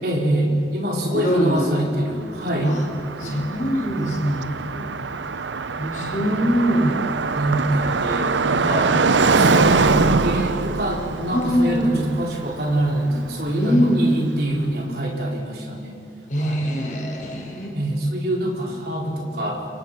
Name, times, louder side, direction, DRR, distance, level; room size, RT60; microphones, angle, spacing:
voice 1, 0.0-2.8 3.0-3.5 3.9-4.4 5.9-6.6 7.3-8.9 9.2-16.0 16.3-16.7 17.7-19.7, right 1 dB, 60° right, -1 dB, 4.7 m, -25 dB
voice 2, 1.1-1.8 2.6-2.8 3.2-4.9 5.8-7.0 11.3-11.9 13.6-14.0 16.3-17.7, equal, 45° left, 0 dB, 5.0 m, -23 dB
Car passing by, 2.1-14.1, right 4 dB, 85° right, 0.8 m, -23 dB
28.5 x 24.0 x 5.8 m, 2.8 s
head